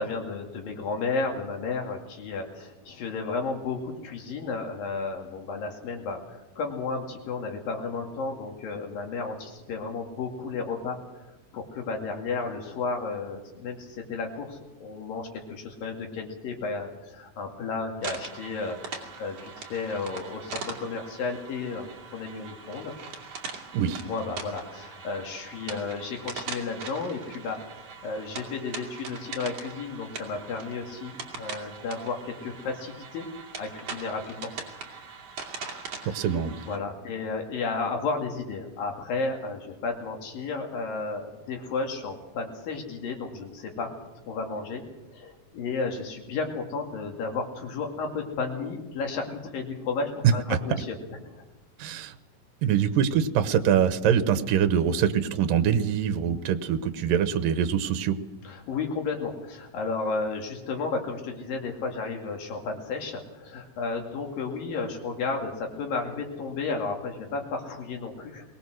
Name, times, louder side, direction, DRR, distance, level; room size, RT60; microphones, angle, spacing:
voice 1, 0.0-23.0 24.1-33.3 33.6-34.5 36.0-36.3 36.6-43.9 44.2-44.8 45.1-51.0 51.2-51.4 58.4-68.4, left 4 dB, 90° left, 2 dB, 4.1 m, -33 dB
sound 1, 18.0-36.8, right 5 dB, 50° right, 3.3 m, -41 dB
voice 2, 36.1-36.6 50.2-50.3 51.8-52.2 52.6-58.2, right 8 dB, 80° right, 10 dB, 2.7 m, -24 dB
22.0 x 19.5 x 6.4 m, 1.1 s
omnidirectional pair, 3.9 m